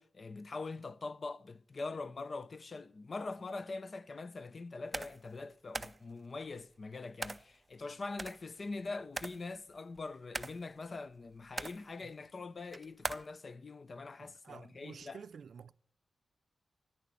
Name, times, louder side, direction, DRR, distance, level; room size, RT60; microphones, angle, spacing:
voice 1, 0.0-15.2, left 3 dB, 40° left, 0.4 m, -43 dB
sound 1, 4.9-5.3 5.7-6.0 7.2-7.5 8.2-8.8 9.2-9.5 10.0-10.8 11.4-11.9 12.7-13.3, right 2 dB, 20° right, 0.4 m, -40 dB
voice 2, 14.2-15.7, right 6 dB, 80° right, 0.4 m, -51 dB
11.0 x 9.5 x 9.6 m
wide cardioid pair, 170°, 0 cm